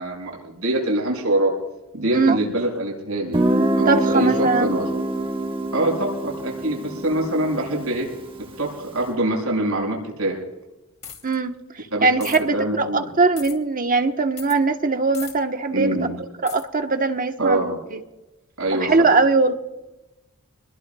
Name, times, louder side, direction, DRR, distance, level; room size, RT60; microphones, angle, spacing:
voice 1, 0.0-1.5 1.9-3.4 3.7-4.9 5.7-8.1 8.6-10.4 11.9-12.3 12.5-13.1 15.7-16.1 17.4-17.8 18.6-18.9, right 1 dB, 80° right, -2 dB, 6.6 m, -24 dB
Guitar, 3.3-8.9, right 1 dB, 25° right, 1.5 m, -25 dB
voice 2, 3.8-4.7 11.2-15.9 16.4-17.6 17.9-18.0 18.7-19.5, right 3 dB, 40° right, 5 dB, 1.2 m, -21 dB
sound 1, 11.0-11.4 12.2-12.4 13.4-13.5 14.4-14.6 15.1-15.3 16.5-16.6, left 8 dB, 30° left, 2.9 m, -37 dB
26.0 x 21.0 x 2.4 m, 0.99 s
head